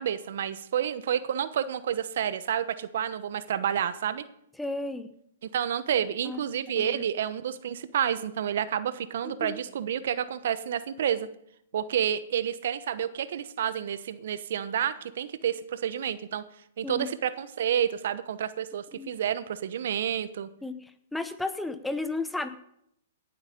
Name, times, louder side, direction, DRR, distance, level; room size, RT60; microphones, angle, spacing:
voice 1, 0.0-4.2 5.4-11.3 11.7-16.4 16.8-20.5, right 9 dB, 65° right, 14 dB, 0.9 m, -29 dB
voice 2, 4.6-5.1 6.2-6.4 6.8-7.0 9.4-9.6 16.8-17.1 18.9-19.1 20.6-20.8 21.1-22.5, left 2 dB, 5° left, 11 dB, 0.9 m, -33 dB
18.0 x 8.0 x 5.2 m, 0.74 s
hypercardioid pair, 130°, 0 cm